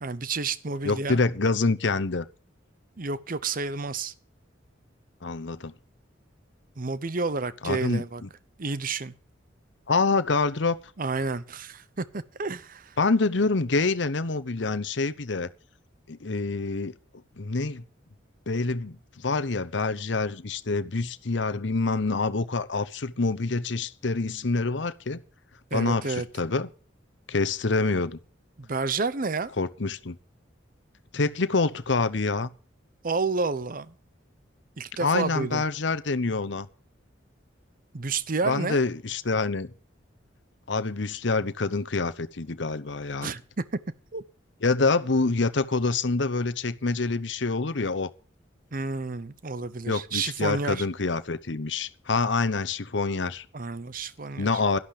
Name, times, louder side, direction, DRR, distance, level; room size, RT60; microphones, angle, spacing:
voice 1, 0.0-1.2 3.0-4.1 6.8-8.2 8.6-9.1 11.0-13.0 25.7-26.3 28.6-29.5 33.0-33.9 34.8-35.6 37.9-38.8 43.2-43.4 44.1-44.2 48.7-50.9 53.5-54.5, right 4 dB, 45° right, 0.8 m, -30 dB
voice 2, 0.8-2.3 5.2-5.7 7.6-8.3 9.9-10.8 13.0-15.5 16.1-16.9 17.4-17.8 18.5-25.2 25.7-26.7 27.3-28.2 29.6-30.2 31.1-32.5 35.0-36.7 38.5-39.7 40.7-43.3 44.6-48.1 49.9-53.4 54.4-54.8, left 3 dB, 70° left, 0.9 m, -26 dB
12.5 x 11.5 x 5.0 m
head